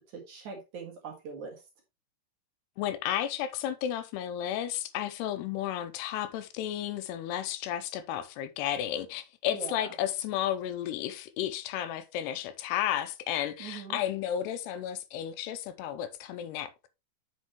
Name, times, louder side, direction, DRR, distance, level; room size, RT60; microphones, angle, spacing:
voice 1, 0.1-1.6 9.5-9.9 13.6-14.0, right 5 dB, 55° right, 2.6 m, -41 dB
voice 2, 2.8-16.9, left 11 dB, 85° left, 2.7 m, -33 dB
8.2 x 6.3 x 3.1 m
omnidirectional pair, 4.9 m